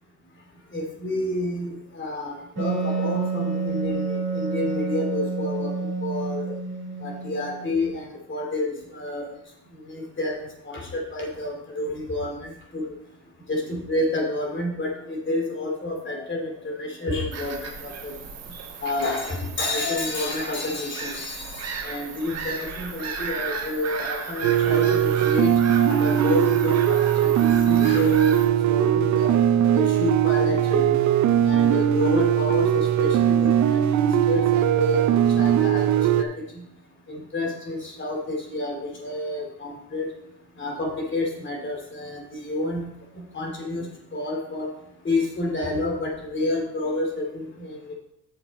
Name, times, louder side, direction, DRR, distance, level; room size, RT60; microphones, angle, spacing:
voice 1, 0.7-6.6 7.0-9.3 9.7-12.9 13.5-18.1 18.8-25.5 25.8-29.3 29.7-31.0 31.4-36.6 37.1-40.1 40.6-42.9 43.1-44.7 45.0-48.0, left 2 dB, 40° left, 0 dB, 2.8 m, -29 dB
Wind instrument woodwind instrument, 2.6-7.9, right 4 dB, 40° right, 3.1 m, -29 dB
Bird vocalization bird call bird song / Gull seagull, 17.3-28.4, right 5 dB, 55° right, 1.5 m, -35 dB
sound 1, 24.4-36.2, right 10 dB, 70° right, 0.6 m, -20 dB
7.4 x 7.0 x 4.2 m, 0.80 s
cardioid pair, 90°, 30 cm